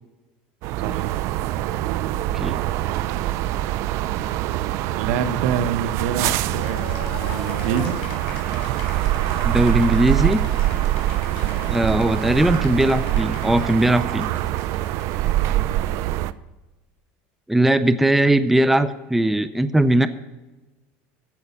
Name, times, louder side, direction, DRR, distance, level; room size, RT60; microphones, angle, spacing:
sound 1, 0.6-16.3, right 14 dB, 55° right, 0.5 m, -24 dB
voice 1, 5.0-8.0 11.4-11.6 15.5-15.7, right 7 dB, 75° right, 10 dB, 1.2 m, -27 dB
Cheering / Applause, 6.3-15.8, left 6 dB, 80° left, 3.2 m, -40 dB
voice 2, 9.4-10.4 11.7-14.3 17.5-20.1, right 1 dB, 5° right, 13 dB, 0.5 m, -19 dB
14.0 x 5.6 x 8.2 m, 1.1 s
cardioid pair, 140°, 6 cm